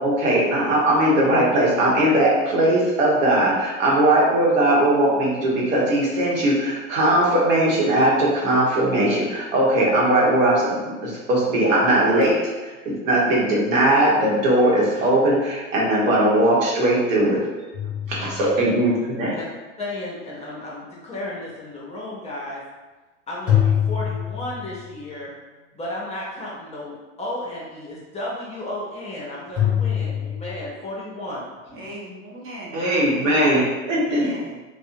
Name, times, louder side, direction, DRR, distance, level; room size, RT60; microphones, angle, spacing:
voice 1, 0.0-17.4 18.1-19.4 32.7-34.3, right 1 dB, 75° right, -5 dB, 0.9 m, -19 dB
sound 1, 17.7-18.9 23.5-25.0 29.6-30.7, left 9 dB, 5° right, 0.9 m, -24 dB
voice 2, 19.8-22.6 23.3-25.3 25.7-31.9, left 1 dB, 15° left, -6 dB, 0.5 m, -33 dB
voice 3, 31.7-32.8 33.1-34.6, right 1 dB, 30° right, -4 dB, 0.8 m, -39 dB
2.6 x 2.1 x 2.5 m, 1.2 s
hypercardioid pair, 80°, 40 cm